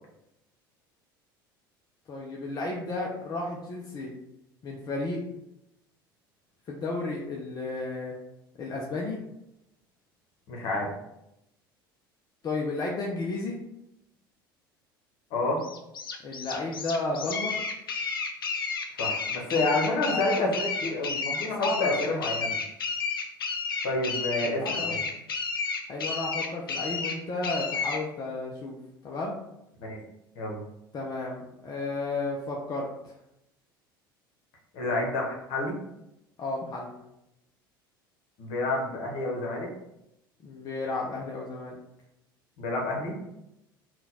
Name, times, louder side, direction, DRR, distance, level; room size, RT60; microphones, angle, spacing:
voice 1, 2.1-4.1 4.6-5.2 6.7-8.2 8.6-9.2 12.4-13.6 16.2-17.6 20.0-20.5 21.4-22.3 24.6-25.1 25.9-28.8 29.0-29.3 30.9-33.1 36.4-36.9 40.4-41.7, left 2 dB, 35° left, -2 dB, 0.7 m, -33 dB
voice 2, 10.5-10.9 15.3-15.6 19.0-22.6 23.8-24.9 29.8-30.0 30.3-30.6 34.7-35.8 38.4-39.7 42.6-43.1, left 2 dB, 55° left, 0 dB, 1.2 m, -29 dB
sound 1, 15.6-28.0, left 4 dB, 80° left, 0.5 m, -32 dB
3.9 x 2.4 x 4.1 m, 0.84 s
figure-of-eight pair, 70°, 12 cm